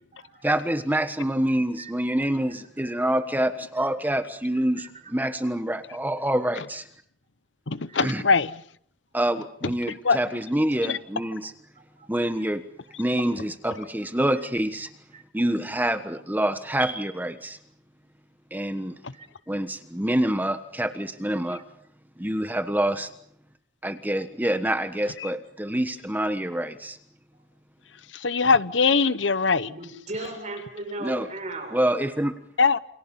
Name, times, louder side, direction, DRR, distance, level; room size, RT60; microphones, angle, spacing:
voice 1, 0.4-6.9 8.0-8.2 9.1-11.5 12.1-12.6 13.0-14.9 15.3-17.6 18.5-19.0 19.5-21.6 22.2-23.1 23.8-27.0 31.0-31.3 31.7-32.4, right 1 dB, 10° right, 1.3 m, -26 dB
voice 2, 7.7-8.5 10.0-10.2 10.9-11.0 19.0-19.1 25.2-25.3 28.2-29.7 32.6-32.8, left 4 dB, 80° left, 1.0 m, -21 dB
voice 3, 29.7-31.8, right 2 dB, 40° right, 6.6 m, -36 dB
29.0 x 27.5 x 5.5 m
head